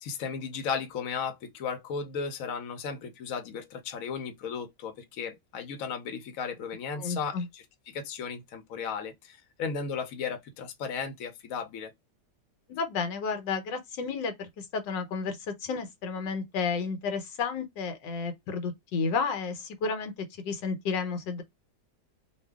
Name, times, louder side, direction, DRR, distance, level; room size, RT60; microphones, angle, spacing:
voice 1, 0.0-11.9, left 6 dB, 60° left, 1.1 m, -35 dB
voice 2, 7.0-7.5 12.7-21.4, left 5 dB, 90° left, 1.5 m, -32 dB
2.7 x 2.6 x 3.5 m
omnidirectional pair, 1.9 m